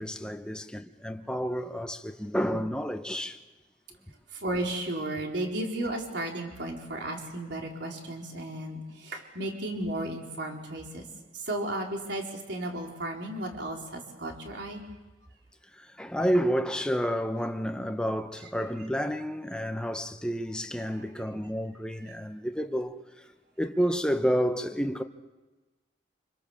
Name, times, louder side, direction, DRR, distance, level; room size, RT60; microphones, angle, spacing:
voice 1, 0.0-3.4 15.7-23.3 23.6-25.0, equal, 5° left, 1.0 m, -30 dB
voice 2, 4.3-11.1 11.3-14.8 20.8-21.1, right 1 dB, 60° right, 4.2 m, -34 dB
27.0 x 26.0 x 7.2 m
head